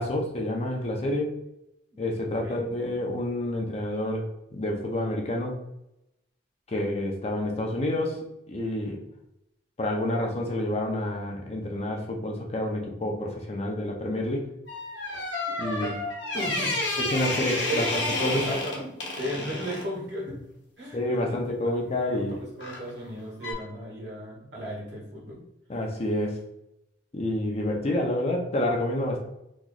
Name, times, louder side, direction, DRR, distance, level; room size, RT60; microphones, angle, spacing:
voice 1, 0.0-1.3 2.0-4.3 4.5-5.6 6.7-9.0 9.8-14.5 15.6-16.0 17.1-18.6 20.9-22.4 25.7-26.4 27.1-29.2, left 1 dB, 35° left, 1 dB, 0.5 m, -28 dB
sound 1, 14.7-19.9 22.6-22.9 23.4-23.5, left 2 dB, 80° left, 0.9 m, -30 dB
voice 2, 16.3-17.1 17.7-17.8 18.2-18.9 19.2-20.4 20.8-21.4 21.6-25.4, equal, 65° right, -4 dB, 1.4 m, -35 dB
3.0 x 2.3 x 3.9 m, 0.84 s
head